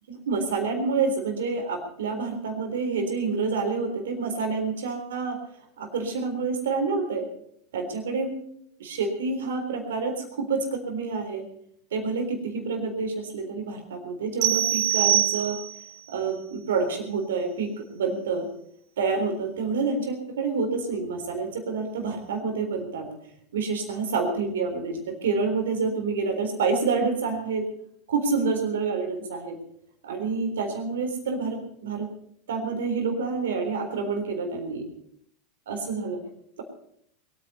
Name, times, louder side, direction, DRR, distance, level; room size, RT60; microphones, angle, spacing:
voice 1, 0.1-5.4 5.8-7.3 7.7-8.3 8.8-11.5 11.9-15.6 16.1-18.5 19.0-23.1 23.5-27.7 28.1-29.6 30.0-32.1 32.5-34.9 35.7-36.2, right 4 dB, 75° right, 5 dB, 3.8 m, -28 dB
sound 1, 14.4-15.9, right 12 dB, 60° right, 1.5 m, -23 dB
22.5 x 9.4 x 5.5 m, 0.69 s
hypercardioid pair, 90°, 0 cm